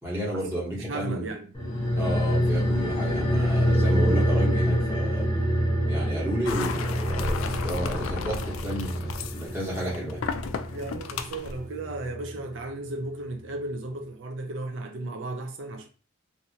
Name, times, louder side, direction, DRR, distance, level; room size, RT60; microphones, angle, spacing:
voice 1, 0.0-1.2 1.9-5.3 5.8-10.2, right 1 dB, 10° right, 1.2 m, -32 dB
voice 2, 0.7-1.5 10.7-15.9, right 2 dB, 65° right, 0.5 m, -35 dB
sound 1, 1.6-12.4 12.7-12.8, equal, 20° left, 0.9 m, -26 dB
sound 2, 6.5-11.6, left 5 dB, 85° left, 0.3 m, -34 dB
2.6 x 2.5 x 2.8 m
head